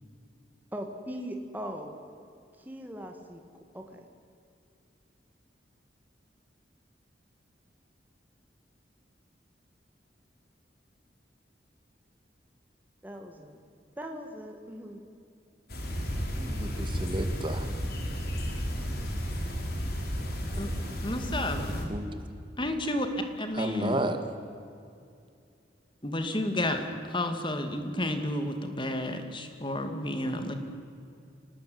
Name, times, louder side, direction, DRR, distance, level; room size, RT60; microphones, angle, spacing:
voice 1, 0.7-2.0 2.7-3.4 3.7-4.0 13.0-13.6 14.0-15.0, equal, 10° right, 3 dB, 2.1 m, -39 dB
sound 1, 15.7-21.8, equal, 55° left, 4.5 m, -32 dB
voice 2, 16.3-17.7 21.9-22.2 23.5-24.2, right 1 dB, 25° right, 7 dB, 2.1 m, -32 dB
voice 3, 21.0-21.9 22.6-23.1 23.4-24.0 26.0-30.5, left 1 dB, 25° left, 7 dB, 2.5 m, -31 dB
26.5 x 19.0 x 9.6 m, 2.5 s
head